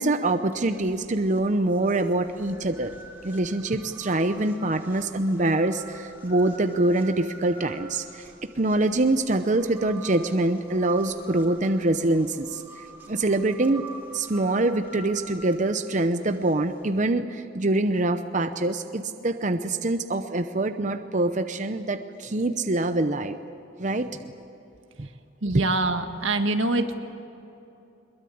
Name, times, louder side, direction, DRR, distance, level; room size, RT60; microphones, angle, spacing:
voice 1, 0.0-2.9 3.2-8.2 8.6-13.8 14.1-23.4 23.8-24.1 25.0-25.1, right 2 dB, 40° right, 9 dB, 0.8 m, -25 dB
sound 1, 0.5-16.9, right 2 dB, 10° right, 3.4 m, -47 dB
voice 2, 25.4-27.0, right 2 dB, 90° right, 6 dB, 1.8 m, -25 dB
22.5 x 22.0 x 8.6 m, 2.9 s
head